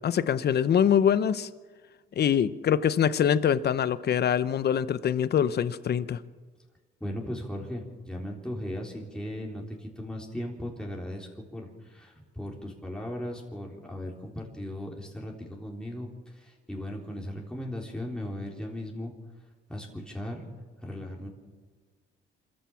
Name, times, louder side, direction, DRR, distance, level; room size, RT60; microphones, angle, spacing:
voice 1, 0.0-1.5 2.2-6.2, left 8 dB, 55° left, 15 dB, 0.9 m, -24 dB
voice 2, 7.0-19.1 19.7-20.5 20.8-21.3, left 1 dB, 5° left, -2 dB, 3.8 m, -37 dB
26.0 x 14.0 x 7.1 m, 1.4 s
cardioid pair, 90°, 20 cm